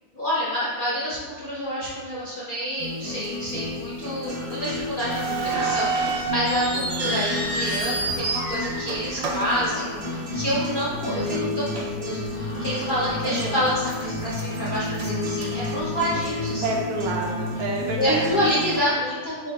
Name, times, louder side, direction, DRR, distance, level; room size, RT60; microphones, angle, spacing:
voice 1, 0.1-16.6 18.0-19.5, equal, 75° left, -8 dB, 0.4 m, -28 dB
sound 1, 2.8-18.8, left 2 dB, 35° right, 1.0 m, -31 dB
Breathing, 4.1-9.0 9.3-14.0, left 1 dB, 30° left, 0.5 m, -44 dB
sound 2, 5.1-10.4 10.7-10.8 11.5-11.7 12.2-12.3 12.9-13.5 13.8-16.3, right 3 dB, 90° right, 1.4 m, -29 dB
voice 2, 5.3-5.9 6.7-7.1 9.2-10.2 10.5-10.7 13.2-13.6 16.6-18.5, right 2 dB, 70° right, 0 dB, 0.9 m, -31 dB
7.2 x 2.8 x 2.3 m, 1.5 s
omnidirectional pair, 1.9 m